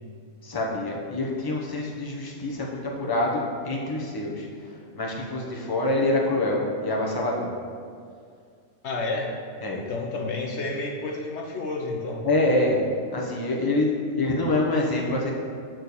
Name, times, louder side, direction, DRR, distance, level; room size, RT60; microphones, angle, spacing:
voice 1, 0.4-4.5 4.9-7.5 9.6-9.8 12.2-12.8 13.1-15.3, left 2 dB, 20° left, -2 dB, 1.0 m, -26 dB
voice 2, 8.8-9.3 9.9-12.3, left 3 dB, 65° left, 0 dB, 1.0 m, -30 dB
7.7 x 4.4 x 6.7 m, 2.2 s
omnidirectional pair, 1.3 m